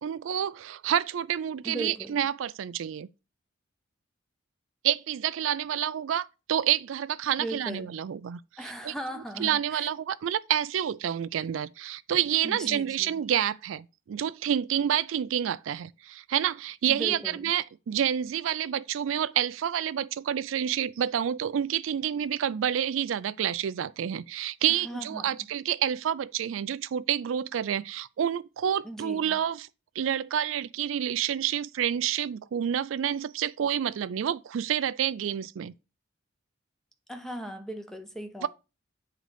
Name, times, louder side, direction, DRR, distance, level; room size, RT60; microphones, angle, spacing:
voice 1, 0.0-3.1 4.8-8.4 8.8-8.9 9.4-29.7 30.0-35.7 38.4-38.5, right 9 dB, 90° right, 0.4 m, -28 dB
voice 2, 1.6-2.2 7.4-8.0 8.6-9.9 12.4-13.2 16.9-17.5 24.7-25.4 28.8-29.4 37.1-38.5, right 1 dB, ahead, 0.6 m, -38 dB
8.2 x 3.8 x 4.9 m
head